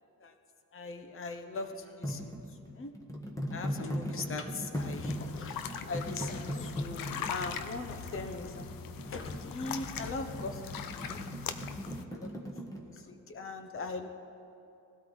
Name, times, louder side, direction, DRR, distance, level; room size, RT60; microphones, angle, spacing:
voice 1, 0.7-2.3 2.7-2.9 3.5-8.7 9.1-11.3 12.1-14.1, left 3 dB, 40° left, 6 dB, 1.1 m, -40 dB
sound 1, 2.0-12.8, equal, 10° left, 1.4 m, -39 dB
sound 2, 4.7-12.0, left 8 dB, 85° left, 0.8 m, -41 dB
20.0 x 16.5 x 4.1 m, 2.7 s
cardioid pair, 160°, 34 cm